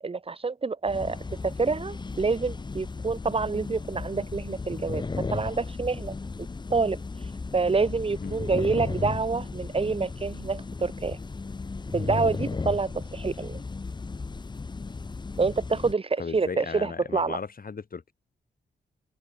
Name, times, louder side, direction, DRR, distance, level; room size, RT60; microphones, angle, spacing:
voice 1, 0.0-6.2 6.7-7.0 7.5-11.2 11.9-13.6 15.4-17.4, right 4 dB, 30° right, 0.6 m, -27 dB
sound 1, 0.9-15.9, left 4 dB, 25° left, 0.5 m, -35 dB
voice 2, 16.2-18.1, left 5 dB, 45° left, 1.2 m, -36 dB
open air
cardioid pair, 65°, 20 cm